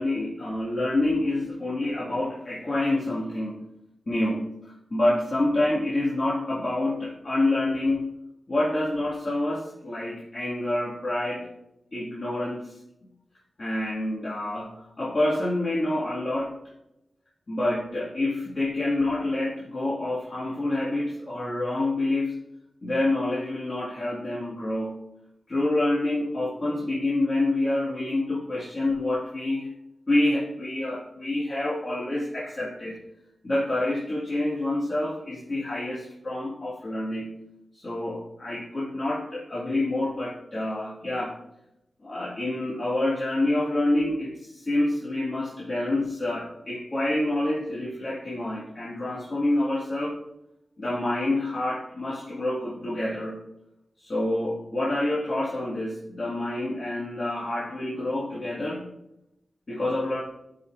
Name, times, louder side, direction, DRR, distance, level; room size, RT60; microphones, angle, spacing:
voice 1, 0.0-3.6 4.1-8.1 8.5-11.5 11.9-12.8 13.6-16.5 17.5-22.3 22.8-25.0 25.5-29.7 30.1-33.0 33.4-37.3 37.7-41.4 42.0-50.2 50.8-53.4 54.0-58.9 59.7-60.2, left 1 dB, 45° left, -6 dB, 1.6 m, -27 dB
12.0 x 5.0 x 2.4 m, 0.87 s
wide cardioid pair, 75°, 0 cm